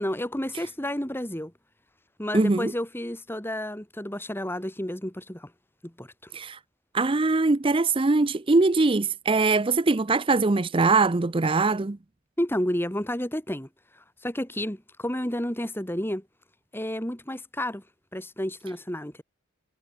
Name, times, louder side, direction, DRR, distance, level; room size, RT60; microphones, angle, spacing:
voice 1, 0.0-1.5 2.2-5.5 5.8-6.3 12.4-16.3 16.7-17.8 18.1-19.2, left 1 dB, 10° left, 2.6 m, -31 dB
voice 2, 2.3-2.7 6.3-6.6 6.9-12.0, right 3 dB, 25° right, 0.5 m, -22 dB
head